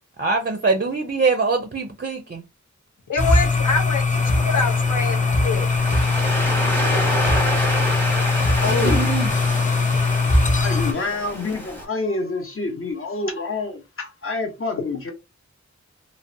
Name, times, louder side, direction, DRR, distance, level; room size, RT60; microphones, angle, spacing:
voice 1, 0.2-2.4 8.8-9.3, right 4 dB, 35° right, 0.4 m, -23 dB
voice 2, 3.1-5.7, left 4 dB, 85° left, 0.6 m, -25 dB
sound 1, 3.2-10.9, left 3 dB, 25° left, 0.4 m, -20 dB
Waves surf, 4.1-11.8, equal, 5° left, 0.9 m, -28 dB
voice 3, 8.5-9.1 9.6-15.1, left 3 dB, 45° left, 0.8 m, -28 dB
2.6 x 2.0 x 2.5 m
wide cardioid pair, 65°, 30 cm